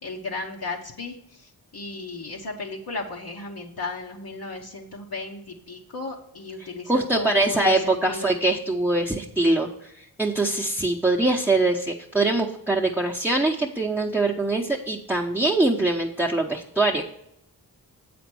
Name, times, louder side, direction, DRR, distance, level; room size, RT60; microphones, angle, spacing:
voice 1, 0.0-8.4, left 3 dB, 65° left, -2 dB, 1.2 m, -34 dB
voice 2, 6.6-17.0, right 2 dB, 5° right, -2 dB, 0.9 m, -23 dB
7.8 x 5.1 x 6.2 m, 0.77 s
cardioid pair, 60°, 39 cm